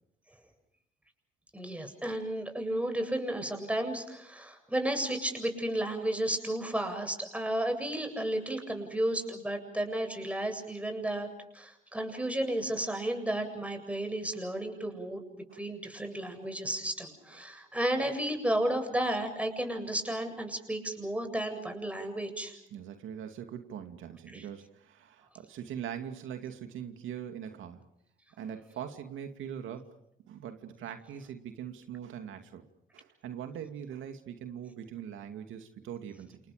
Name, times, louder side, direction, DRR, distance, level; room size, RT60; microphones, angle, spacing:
voice 1, 1.5-22.5 24.3-24.5, right 1 dB, 5° right, 5 dB, 7.9 m, -33 dB
voice 2, 22.7-27.8 28.4-29.9 30.3-32.7 32.9-36.4, right 9 dB, 80° right, 6 dB, 2.5 m, -42 dB
29.5 x 29.0 x 5.2 m, 0.81 s
cardioid pair, 90°, 20 cm